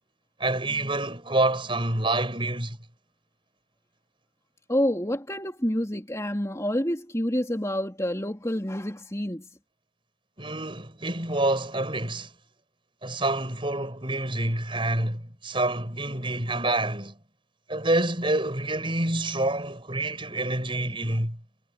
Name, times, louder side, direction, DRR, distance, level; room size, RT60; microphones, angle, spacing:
voice 1, 0.4-2.8 10.4-12.3 13.0-17.2 17.7-21.4, right 2 dB, 25° right, 6.5 m, -27 dB
voice 2, 4.7-9.5, equal, 15° left, 3.5 m, -28 dB
head